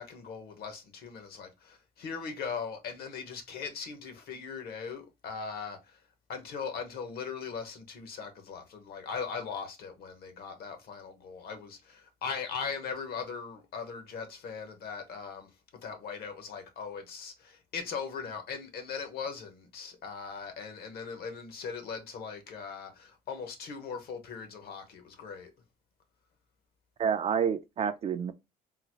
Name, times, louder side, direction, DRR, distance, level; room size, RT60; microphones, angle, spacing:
voice 1, 0.0-6.0 6.3-15.6 15.8-25.5, left 5 dB, 65° left, 1.0 m, -39 dB
voice 2, 27.0-28.3, right 7 dB, 35° right, 0.4 m, -28 dB
3.8 x 2.0 x 2.9 m
cardioid pair, 110°, 17 cm